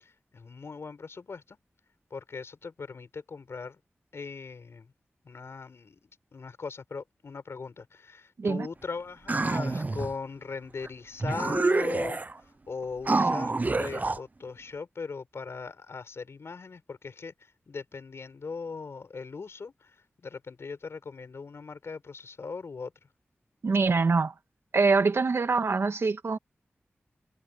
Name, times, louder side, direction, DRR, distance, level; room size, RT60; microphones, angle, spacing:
voice 1, 0.0-1.6 2.1-3.8 4.1-4.9 5.2-12.2 12.7-19.9 20.2-22.9, left 4 dB, 80° left, 6.7 m, -39 dB
sound 1, 9.3-10.1 10.8-10.9 11.2-12.4 13.0-14.2, right 3 dB, 40° right, 0.7 m, -27 dB
voice 2, 23.6-24.3 24.7-26.4, right 4 dB, 70° right, 2.3 m, -24 dB
wide cardioid pair, 65°, 4 cm